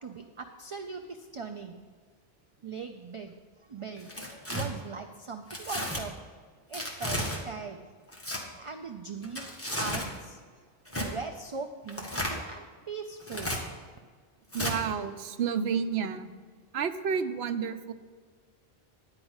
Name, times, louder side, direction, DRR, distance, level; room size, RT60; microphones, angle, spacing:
voice 1, 0.0-1.8 2.6-3.3 3.6-4.1 4.5-6.1 6.7-7.9 8.6-10.4 11.0-13.6, right 4 dB, 45° right, 6 dB, 0.4 m, -40 dB
Tearing, 4.0-4.7 5.5-6.0 6.7-7.4 8.1-8.4 9.2-10.1 10.9-11.1 11.9-12.4 13.2-13.6 14.5-14.8, equal, 15° left, 1.4 m, -33 dB
voice 2, 14.5-16.3 16.7-17.9, right 6 dB, 85° right, 10 dB, 0.9 m, -30 dB
10.5 x 4.9 x 7.9 m, 1.6 s
omnidirectional pair, 1.0 m